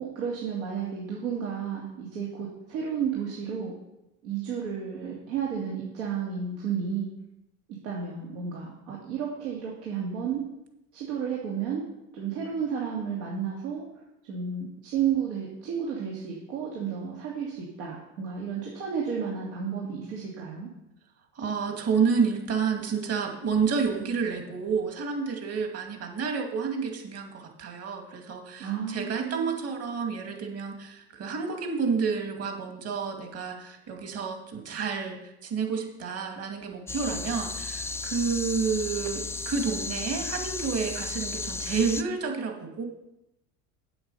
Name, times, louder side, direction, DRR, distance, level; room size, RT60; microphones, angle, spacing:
voice 1, 0.0-3.7 4.2-7.1 7.8-10.4 10.9-11.8 12.1-13.8 14.3-20.7 28.6-29.6, right 7 dB, 80° right, -4 dB, 2.6 m, -32 dB
voice 2, 21.3-42.8, right 5 dB, 45° right, 3 dB, 2.5 m, -30 dB
sound 1, 36.9-42.0, left 4 dB, 10° left, 0.3 m, -34 dB
8.2 x 7.9 x 5.6 m, 0.90 s
supercardioid pair, 95°, 35 cm